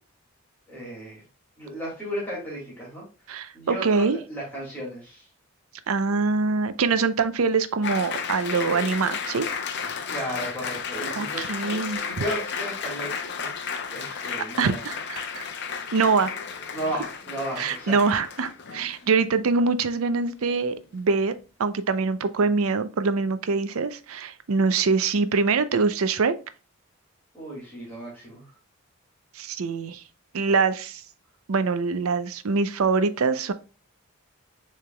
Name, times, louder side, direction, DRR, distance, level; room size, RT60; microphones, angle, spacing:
voice 1, 0.7-1.2 1.6-3.0 3.5-5.3 10.1-11.8 12.1-13.5 13.9-14.9 16.7-17.9 27.3-28.5, right 1 dB, 10° left, 2.1 m, -34 dB
voice 2, 3.3-4.2 5.9-9.5 11.2-12.0 14.6-15.5 15.9-16.3 17.6-21.3 21.6-26.3 29.3-30.0 30.3-31.0 31.5-33.5, right 4 dB, 75° right, 0.5 m, -24 dB
Applause, 7.8-19.2, left 6 dB, 50° left, 0.6 m, -33 dB
6.7 x 3.3 x 2.2 m
head